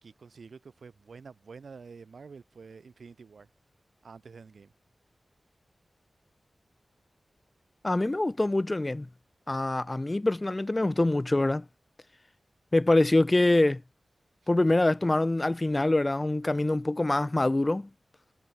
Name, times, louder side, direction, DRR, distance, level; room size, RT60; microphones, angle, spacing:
voice 1, 0.0-3.5 4.0-4.7, right 5 dB, 80° right, 1.6 m, -48 dB
voice 2, 7.8-9.1 9.5-11.6 12.7-13.8 14.5-17.9, left 2 dB, 30° left, 0.3 m, -25 dB
cardioid pair, 50°, 0 cm